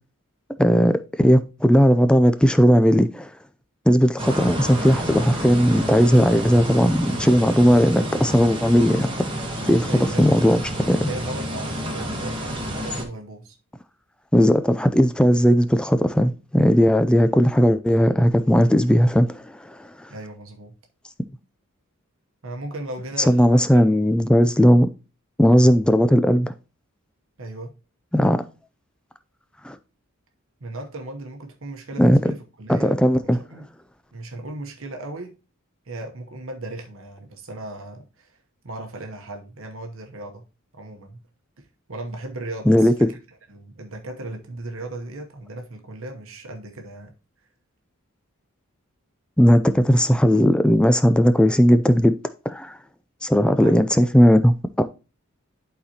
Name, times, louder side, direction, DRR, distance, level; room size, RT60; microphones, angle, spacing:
voice 1, 0.6-3.3 3.9-9.1 9.7-9.9 10.2-10.6 10.9-11.1 14.3-19.9 23.2-24.9 25.4-26.5 28.1-28.4 29.6-29.8 32.0-32.2 32.7-33.4 42.7-42.9 49.4-52.1 52.5-52.8 53.2-55.0, equal, 5° left, 0.3 m, -17 dB
sound 1, 4.2-13.0, equal, 25° right, 1.3 m, -29 dB
voice 2, 9.9-10.5 10.8-13.6 20.1-20.7 22.4-24.0 27.4-27.7 30.6-33.7 34.1-35.3 35.9-40.4 40.7-41.2 41.6-43.2 43.5-47.1 53.6-53.8, right 2 dB, 65° right, 0.9 m, -36 dB
11.0 x 4.1 x 2.8 m
head